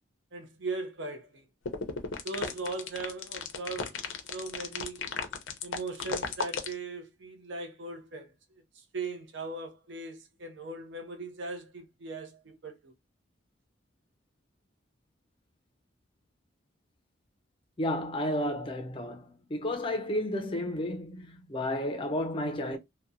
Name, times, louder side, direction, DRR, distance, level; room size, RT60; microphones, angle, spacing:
voice 1, 0.3-1.5 2.2-4.0 4.3-5.0 5.6-8.3 8.7-12.9, right 3 dB, 70° right, 0.6 m, -39 dB
sound 1, 1.7-6.7, left 5 dB, 75° left, 0.5 m, -34 dB
voice 2, 17.8-22.8, left 1 dB, 25° left, 0.5 m, -32 dB
2.8 x 2.1 x 2.5 m
head